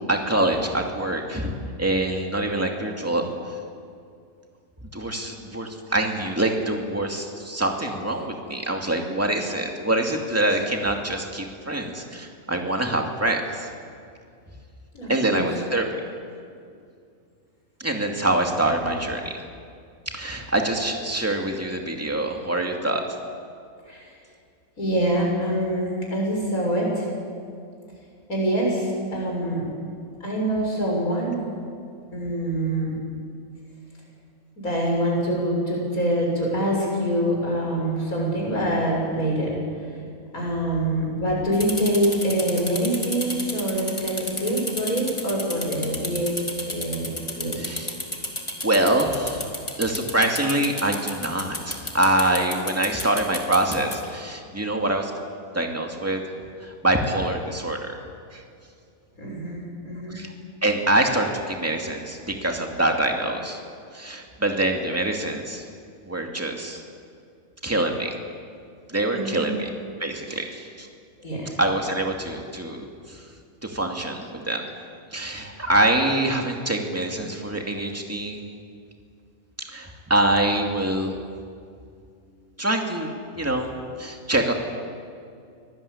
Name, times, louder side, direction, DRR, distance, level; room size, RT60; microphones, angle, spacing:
voice 1, 0.0-1.5 1.8-3.3 4.9-13.7 15.1-16.0 17.8-19.4 20.1-23.0 47.6-47.9 48.6-49.5 49.8-55.1 55.5-56.2 56.6-58.0 58.3-58.4 60.1-60.3 60.6-63.6 63.9-65.6 66.0-66.8 67.6-68.2 68.9-69.7 70.0-70.9 71.6-73.2 73.6-74.6 75.1-78.4 79.7-81.2 82.6-83.7 84.0-84.5, right 1 dB, 10° right, 2 dB, 2.4 m, -25 dB
voice 2, 14.9-15.5 23.9-24.0 24.8-27.1 28.3-29.6 30.2-31.5 32.1-33.0 34.6-39.5 40.3-46.3 46.6-47.7 59.2-60.2 69.1-69.5 71.2-71.5, right 1 dB, 85° left, -2 dB, 7.2 m, -25 dB
sound 1, 41.5-54.0, left 1 dB, 20° left, 3.0 m, -32 dB
24.5 x 18.5 x 8.6 m, 2.3 s
omnidirectional pair, 1.5 m